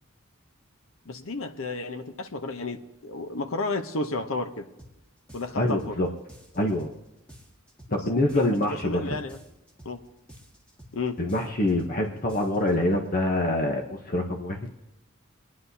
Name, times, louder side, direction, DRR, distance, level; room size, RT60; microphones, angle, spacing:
voice 1, 1.1-4.7 5.3-6.0 8.3-9.4 9.8-10.0 10.9-11.2, left 3 dB, 85° left, 7 dB, 0.9 m, -32 dB
sound 1, 4.8-5.0 5.3-6.0 6.3-7.0 7.3-8.0 8.3-9.0 9.3-10.0 10.3-11.0 11.3-12.0 12.3-12.7, equal, 5° left, 1.6 m, -50 dB
voice 2, 5.6-6.1 6.5-6.9 7.9-9.2 11.2-14.7, left 1 dB, 40° left, 3 dB, 0.9 m, -25 dB
26.0 x 9.6 x 2.8 m, 0.96 s
head